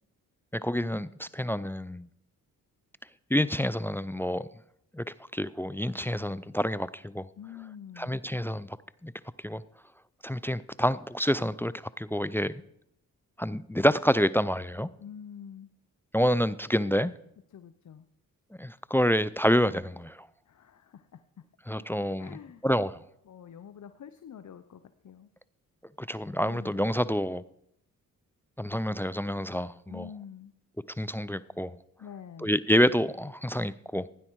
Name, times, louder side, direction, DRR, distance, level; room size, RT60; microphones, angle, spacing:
voice 1, 0.5-2.1 3.3-4.5 4.9-5.0 5.3-7.3 8.0-8.8 9.0-9.1 9.4-9.6 10.2-12.5 13.4-14.9 16.1-17.1 18.6-20.3 21.7-23.0 26.0-27.4 28.6-30.1 31.0-31.8 32.4-34.1, equal, 5° left, 0.4 m, -28 dB
voice 2, 7.4-8.2 15.0-15.7 17.5-18.1 20.5-21.2 21.7-22.6 23.3-25.3 26.4-26.8 29.9-30.5 32.0-32.5, left 8 dB, 55° left, 0.8 m, -47 dB
16.5 x 9.9 x 4.7 m
supercardioid pair, 55°, 36 cm